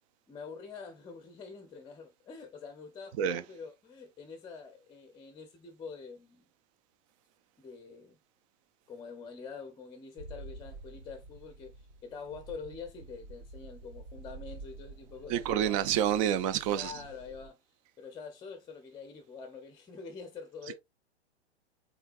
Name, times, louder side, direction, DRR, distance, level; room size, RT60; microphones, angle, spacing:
voice 1, 0.3-6.5 7.6-8.2 8.9-15.9 16.7-17.6 18.0-20.7, left 5 dB, 10° left, 0.7 m, -46 dB
sound 1, 10.2-17.5, right 3 dB, 75° right, 3.2 m, -49 dB
voice 2, 15.3-16.9, right 10 dB, 30° right, 0.4 m, -28 dB
5.7 x 3.8 x 2.4 m
hypercardioid pair, 110°, 34 cm